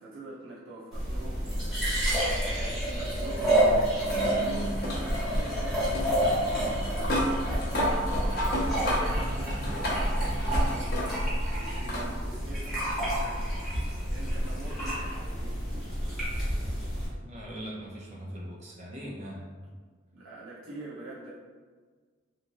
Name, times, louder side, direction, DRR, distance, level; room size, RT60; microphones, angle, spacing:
voice 1, 0.0-15.6 20.1-21.3, right 2 dB, 80° right, -8 dB, 0.6 m, -45 dB
sound 1, 0.9-17.1, right 1 dB, ahead, 1.1 m, -29 dB
sound 2, 2.5-11.4 11.9-12.1 13.4-13.5 16.4-16.5, equal, 50° left, 0.7 m, -33 dB
voice 2, 17.2-19.4, equal, 35° right, -4 dB, 0.6 m, -40 dB
3.0 x 2.5 x 2.6 m, 1.5 s
head